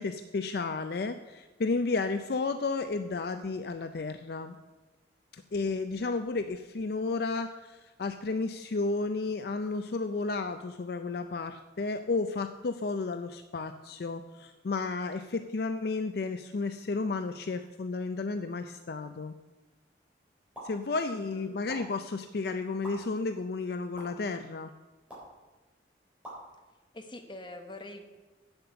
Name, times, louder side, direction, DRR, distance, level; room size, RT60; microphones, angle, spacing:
voice 1, 0.0-4.6 5.5-19.3 20.6-24.7, left 3 dB, 55° left, 8 dB, 0.4 m, -32 dB
sound 1, 20.5-20.7 21.7-21.8 22.8-22.9 24.0-24.1 25.1-25.3 26.2-26.4, equal, 5° right, 4.0 m, -43 dB
voice 2, 21.1-21.6 26.9-28.1, left 1 dB, 25° left, 4 dB, 1.0 m, -44 dB
8.4 x 7.9 x 6.9 m, 1.2 s
head